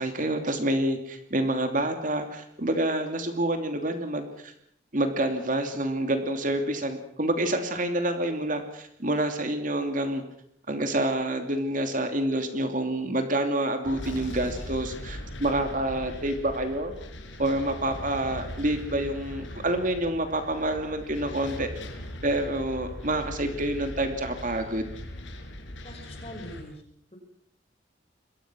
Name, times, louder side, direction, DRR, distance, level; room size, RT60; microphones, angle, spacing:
voice 1, 0.0-4.5 4.9-10.2 10.7-16.9 17.4-21.7 22.2-24.9, right 1 dB, 45° right, 6 dB, 2.8 m, -28 dB
sound 1, 13.8-26.6, left 1 dB, 85° left, 5.2 m, -40 dB
voice 2, 25.8-26.8, left 1 dB, 30° left, 4 dB, 6.0 m, -42 dB
27.0 x 22.5 x 6.3 m, 0.68 s
head